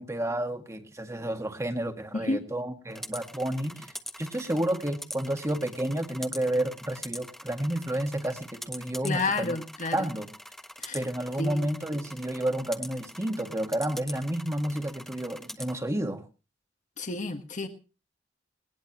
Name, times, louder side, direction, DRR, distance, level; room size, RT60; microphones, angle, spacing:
voice 1, 0.0-3.9 4.2-9.6 9.9-10.3 10.9-16.2, right 1 dB, 15° right, 1.7 m, -30 dB
voice 2, 2.1-2.4 9.0-10.1 10.8-11.0 11.4-11.7 17.0-17.7, left 3 dB, 45° left, 1.6 m, -30 dB
sound 1, 2.9-15.7, left 1 dB, ahead, 1.2 m, -43 dB
19.5 x 19.5 x 2.9 m
head